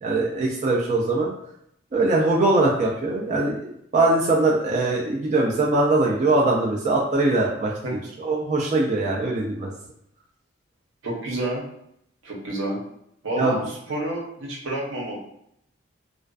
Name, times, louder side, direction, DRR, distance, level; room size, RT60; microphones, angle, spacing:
voice 1, 0.0-1.3 1.9-3.6 3.9-7.7 8.2-9.7 13.4-13.6, right 2 dB, 35° right, -3 dB, 0.3 m, -21 dB
voice 2, 11.0-11.6 12.2-12.8 13.2-15.2, right 1 dB, 85° right, -2 dB, 0.7 m, -29 dB
2.4 x 2.2 x 2.3 m, 0.74 s
head